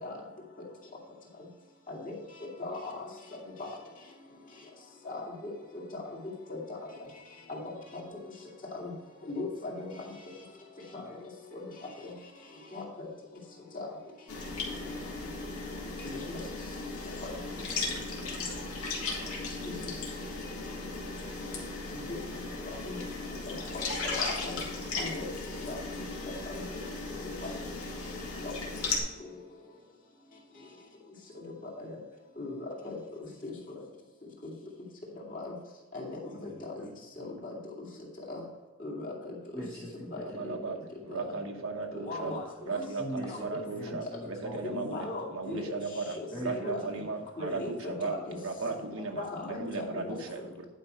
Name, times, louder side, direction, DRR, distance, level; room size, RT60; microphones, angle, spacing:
voice 1, 2.6-2.9 3.6-3.7 5.0-5.5 5.9-6.0 6.5-6.6 7.5-8.0 8.7-8.9 9.3-9.9 10.9-11.0 11.5-11.6 12.0-12.1 12.7-12.8 13.7-13.9 16.0-16.4 17.2-17.3 19.6-19.7 21.9-22.2 22.6-23.0 23.7-23.8 24.2-24.6 25.0-25.2 25.7-25.8 26.3-26.6 28.4-28.5 31.9-32.0 32.4-33.0 33.4-33.5 35.3-35.5 35.9-36.2 36.7-36.8 37.2-37.5 38.3-38.4 38.8-39.1 40.4-40.5 41.1-41.2 42.0-42.8 43.3-43.4 44.6-45.7 46.2-46.8 47.4-48.4 49.2-50.0, left 2 dB, 35° left, -3 dB, 2.3 m, -38 dB
sound 1, 14.3-29.0, left 3 dB, 80° left, 2.1 m, -36 dB
voice 2, 17.5-18.6 36.4-36.9 37.2-37.3 39.5-40.4 40.8-40.9 41.4-41.6 43.0-44.9 45.4-45.7 46.3-47.1, equal, 10° left, -4 dB, 1.1 m, -43 dB
voice 3, 40.2-40.8 41.0-42.4 42.7-50.7, right 4 dB, 65° right, 3 dB, 1.1 m, -36 dB
10.0 x 5.3 x 4.5 m, 1.2 s
head